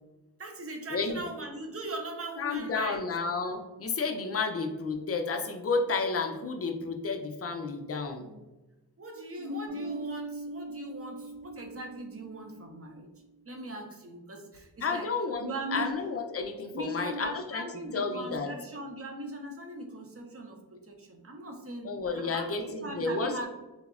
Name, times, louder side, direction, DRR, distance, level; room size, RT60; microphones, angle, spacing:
voice 1, 0.4-3.0 8.2-8.4 9.0-13.1 13.5-15.1 15.4-15.9 16.7-23.5, right 1 dB, 40° right, 2 dB, 0.5 m, -39 dB
voice 2, 0.9-1.2 2.4-8.3 14.8-17.6 17.9-18.5 21.8-23.5, left 4 dB, 40° left, 5 dB, 0.4 m, -31 dB
sound 1, 9.7-13.0, right 2 dB, 65° right, 0.8 m, -40 dB
3.5 x 2.0 x 2.4 m, 1.1 s
wide cardioid pair, 70°, 38 cm